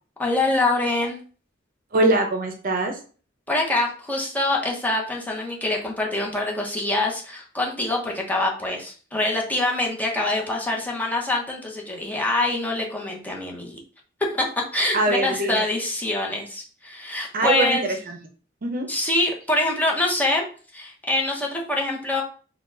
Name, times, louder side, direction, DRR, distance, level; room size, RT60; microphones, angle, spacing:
voice 1, 0.2-1.2 3.5-13.8 14.3-17.8 18.9-20.4 20.7-22.2, left 2 dB, 10° left, -1 dB, 0.9 m, -25 dB
voice 2, 1.9-3.0 14.9-15.7 17.3-18.2 18.6-18.9, right 2 dB, 45° right, 4 dB, 0.7 m, -22 dB
4.3 x 2.3 x 3.9 m, 0.39 s
head